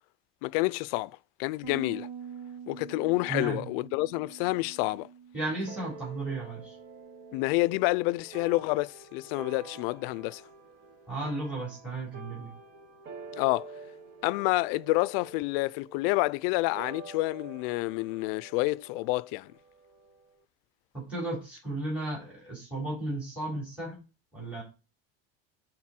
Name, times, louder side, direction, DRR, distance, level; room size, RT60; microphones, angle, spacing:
voice 1, 0.4-2.1 2.7-5.1 7.3-10.4 13.4-13.7 14.2-19.5, left 21 dB, 75° left, 0.5 m, -28 dB
Bass guitar, 1.6-7.9, right 7 dB, 85° right, 1.6 m, -46 dB
voice 2, 3.3-3.6 5.3-6.8 11.1-12.5 20.9-24.0 24.3-24.6, right 2 dB, 5° right, 3.8 m, -34 dB
sound 1, 5.7-20.4, right 3 dB, 35° right, 1.3 m, -48 dB
11.0 x 4.0 x 4.3 m
cardioid pair, 180°, 29 cm